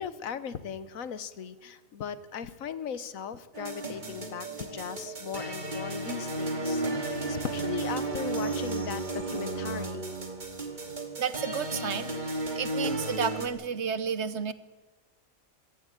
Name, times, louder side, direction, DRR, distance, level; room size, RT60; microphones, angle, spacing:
voice 1, 0.0-10.0, left 7 dB, 80° left, 14 dB, 1.4 m, -38 dB
sound 1, 3.5-13.5, right 2 dB, 35° right, 2.3 m, -33 dB
voice 2, 11.2-14.5, right 7 dB, 60° right, 15 dB, 1.1 m, -32 dB
23.0 x 14.5 x 8.9 m, 1.3 s
omnidirectional pair, 1.4 m